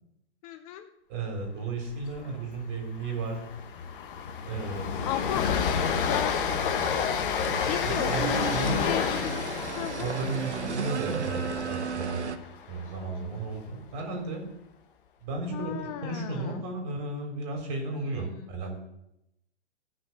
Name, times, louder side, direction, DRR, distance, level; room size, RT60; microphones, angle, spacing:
voice 1, 0.4-0.9 5.0-5.5 5.9-6.6 7.4-8.6 8.8-9.3 9.7-10.2 15.5-16.6 18.2-18.5, left 11 dB, 35° left, 8 dB, 0.9 m, -35 dB
voice 2, 1.1-3.4 4.5-5.1 7.8-8.9 10.0-12.2 12.7-14.4 15.2-18.8, right 3 dB, 35° right, 1 dB, 4.1 m, -34 dB
Train, 1.9-2.2 2.5-2.6 3.0-13.1, left 7 dB, 50° left, 1.3 m, -30 dB
sound 1, 5.4-12.4, right 6 dB, 80° right, 1.1 m, -35 dB
15.5 x 6.4 x 5.9 m, 0.85 s
hypercardioid pair, 125°, 34 cm